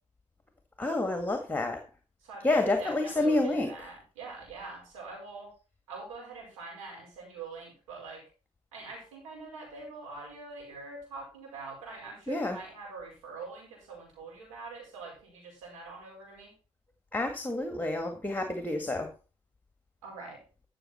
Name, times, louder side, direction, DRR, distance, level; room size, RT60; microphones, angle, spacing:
voice 1, 0.8-1.8 2.4-3.7 12.3-12.6 17.1-19.1, left 2 dB, 10° left, 6 dB, 1.8 m, -29 dB
voice 2, 2.2-5.5 5.9-8.3 8.7-16.5 20.0-20.4, right 4 dB, 85° right, -1 dB, 5.0 m, -44 dB
13.0 x 6.5 x 4.3 m, 0.33 s
hypercardioid pair, 55°, 17 cm